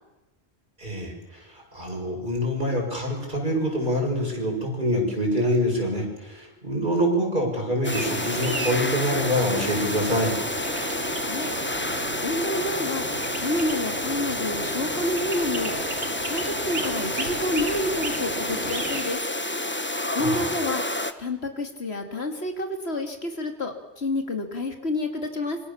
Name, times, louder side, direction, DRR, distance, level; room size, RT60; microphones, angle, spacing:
voice 1, 0.8-10.3 20.2-20.5, equal, 45° right, 0 dB, 7.4 m, -25 dB
sound 1, 7.8-21.1, left 1 dB, 10° left, 1.2 m, -29 dB
sound 2, 7.9-19.0, right 2 dB, 90° right, 3.3 m, -34 dB
voice 2, 11.1-15.7 16.3-19.2 20.1-20.8 21.2-25.6, left 2 dB, 70° left, 5 dB, 2.8 m, -29 dB
26.5 x 25.5 x 7.3 m, 1.0 s
omnidirectional pair, 1.1 m